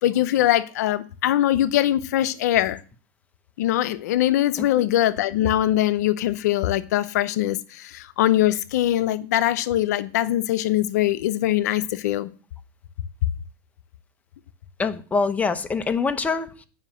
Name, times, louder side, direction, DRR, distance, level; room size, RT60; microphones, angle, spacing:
voice 1, 0.0-2.8 3.6-12.3, left 13 dB, 80° left, 0.6 m, -22 dB
voice 2, 4.6-4.9 14.8-16.7, left 4 dB, 15° left, 1.0 m, -25 dB
9.6 x 5.8 x 7.6 m
supercardioid pair, 120°, 9 cm